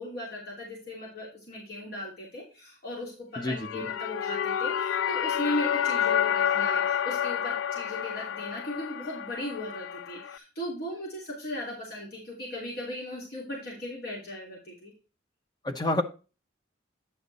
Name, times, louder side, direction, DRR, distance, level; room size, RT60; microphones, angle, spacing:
voice 1, 0.0-14.9, left 1 dB, 50° left, 3.0 m, -37 dB
sound 1, 3.4-10.4, left 9 dB, 80° left, 0.4 m, -29 dB
voice 2, 3.4-3.9 15.6-16.0, left 1 dB, 20° left, 0.9 m, -28 dB
9.7 x 5.8 x 4.1 m
head